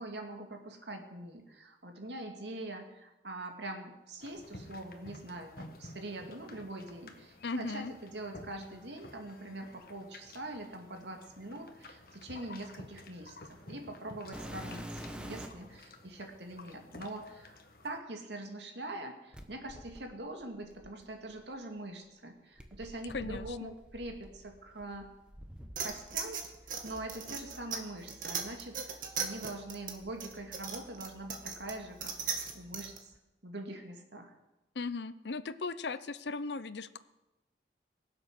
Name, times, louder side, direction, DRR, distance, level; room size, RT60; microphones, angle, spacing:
voice 1, 0.0-17.6 17.8-25.1 25.8-26.4 26.8-33.1 33.4-34.3, right 1 dB, 80° right, 3 dB, 2.3 m, -43 dB
sound 1, 4.2-18.0, left 2 dB, 55° left, 1.5 m, -52 dB
voice 2, 7.4-7.9 23.1-23.7 34.7-37.0, left 4 dB, 75° left, 14 dB, 0.7 m, -37 dB
sound 2, 14.3-15.7 16.6-16.7 19.3-21.4 22.6-26.3 26.6-27.6 28.4-28.5 29.1-29.2 29.9-31.0 31.3-31.8 33.1-33.2, equal, 5° right, 1.1 m, -48 dB
sound 3, 25.8-33.0, right 6 dB, 50° right, 1.8 m, -38 dB
22.5 x 7.7 x 6.1 m, 0.98 s
head